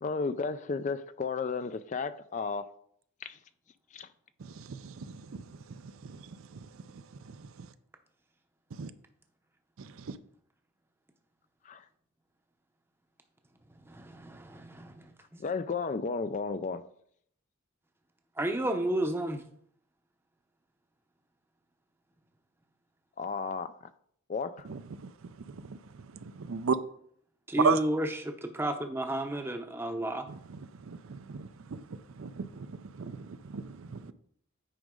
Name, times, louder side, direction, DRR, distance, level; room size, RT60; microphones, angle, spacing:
voice 1, 0.0-2.7 3.2-3.4 3.9-4.1 11.6-11.8 15.4-16.8 23.2-23.9 24.3-24.7, left 4 dB, 35° left, 0.3 m, -33 dB
voice 2, 4.7-5.1 5.3-5.4 8.8-8.9 10.1-10.2 26.4-26.8 27.6-27.8 30.9-31.8 32.2-32.5 33.0-34.1, right 5 dB, 65° right, 0.5 m, -32 dB
voice 3, 13.9-15.1 18.4-19.4 27.5-30.3, right 1 dB, 10° right, 0.7 m, -32 dB
9.1 x 5.2 x 3.8 m
head